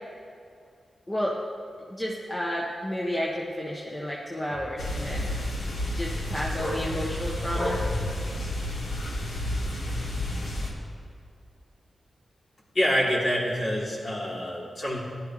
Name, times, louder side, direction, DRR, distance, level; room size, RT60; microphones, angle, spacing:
voice 1, 1.1-1.4 1.9-5.3 5.9-8.0, equal, 20° left, -4 dB, 1.5 m, -31 dB
sound 1, 4.8-10.7, left 1 dB, 85° left, 1.9 m, -31 dB
voice 2, 12.7-15.0, equal, 45° left, -5 dB, 3.4 m, -26 dB
16.0 x 11.5 x 3.3 m, 2.4 s
cardioid pair, 70°, 0 cm